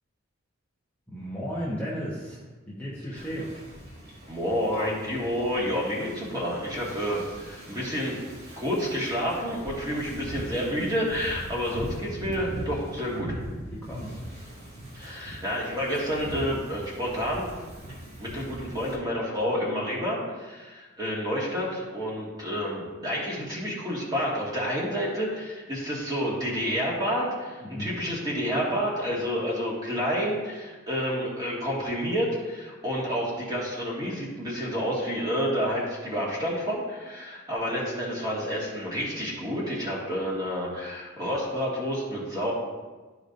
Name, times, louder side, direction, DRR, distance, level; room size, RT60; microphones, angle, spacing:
voice 1, 1.1-3.6 13.7-14.2 14.8-15.1 27.6-27.9, equal, 10° left, -8 dB, 1.1 m, -35 dB
Wind / Ocean, 3.2-18.9, right 1 dB, 55° right, 1.9 m, -41 dB
voice 2, 4.3-8.2 8.6-13.4 14.9-17.5 18.2-42.5, equal, 20° right, -5 dB, 2.0 m, -29 dB
12.0 x 5.0 x 2.6 m, 1.3 s
head